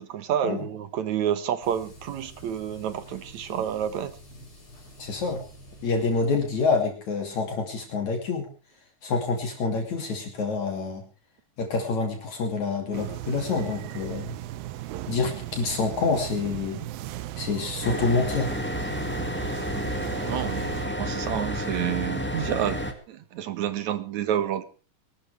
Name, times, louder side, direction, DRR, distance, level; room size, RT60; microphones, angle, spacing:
voice 1, 0.0-4.2 20.2-22.8 23.1-24.6, right 10 dB, 65° right, 2.2 m, -29 dB
sound 1, 1.6-6.7, equal, 35° left, 6.9 m, -48 dB
voice 2, 5.0-5.4 5.8-8.5 9.0-11.0 11.6-14.4 15.1-16.9 17.4-18.5, left 4 dB, 55° left, 3.9 m, -27 dB
sound 2, 12.9-20.9, right 14 dB, 90° right, 2.7 m, -37 dB
sound 3, 17.8-22.9, equal, 5° left, 1.0 m, -30 dB
23.5 x 13.0 x 3.4 m
omnidirectional pair, 4.0 m